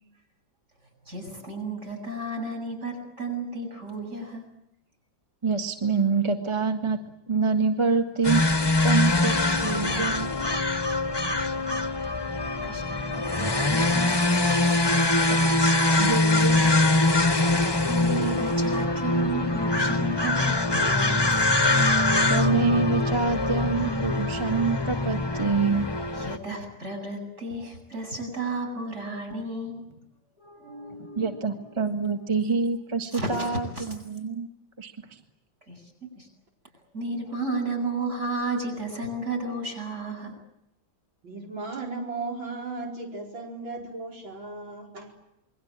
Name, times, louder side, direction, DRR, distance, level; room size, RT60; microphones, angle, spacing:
voice 1, 1.1-4.4 12.6-14.2 17.5-21.4 26.2-29.8 30.4-31.4 33.1-33.9 35.7-35.8 36.1-36.3 36.9-40.3, right 2 dB, 35° right, 2 dB, 8.4 m, -33 dB
voice 2, 5.4-8.4 8.8-10.3 15.3-15.4 16.0-16.8 22.3-25.9 31.1-34.5 34.8-35.2, right 4 dB, 15° right, 6 dB, 1.5 m, -26 dB
sound 1, 8.2-26.4, left 2 dB, 15° left, 1.1 m, -23 dB
voice 3, 41.2-45.1, right 3 dB, 80° right, 1 dB, 5.3 m, -36 dB
28.0 x 22.5 x 8.9 m, 0.82 s
omnidirectional pair, 2.1 m